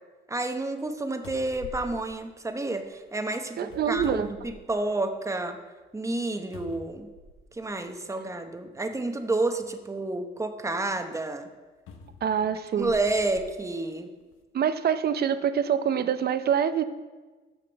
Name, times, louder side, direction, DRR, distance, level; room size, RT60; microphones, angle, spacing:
voice 1, 0.3-5.6 5.9-7.1 7.5-11.5 12.8-14.1, right 2 dB, 15° right, 7 dB, 0.9 m, -30 dB
sound 1, 0.8-0.9 1.2-2.9 3.6-5.0 5.5-5.6 6.5-7.6 8.6-8.7 11.9-13.5 14.2-14.3, left 3 dB, 90° left, 0.9 m, -46 dB
voice 2, 3.6-4.3 12.2-12.9 14.5-16.8, right 8 dB, 55° right, 11 dB, 0.7 m, -25 dB
7.7 x 5.8 x 6.9 m, 1.3 s
cardioid pair, 90°, 20 cm